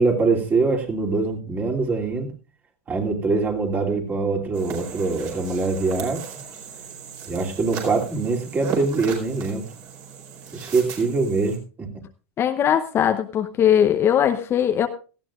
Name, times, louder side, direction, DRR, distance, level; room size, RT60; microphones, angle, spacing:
voice 1, 0.0-2.3 2.9-6.3 7.3-9.6 10.5-11.9, right 3 dB, 25° right, 1 dB, 2.9 m, -23 dB
sound 1, 4.5-11.6, right 6 dB, 50° right, 4.4 m, -36 dB
voice 2, 12.4-14.9, left 9 dB, 35° left, 7 dB, 0.8 m, -20 dB
17.5 x 13.5 x 2.5 m, 0.35 s
hypercardioid pair, 105°, 7 cm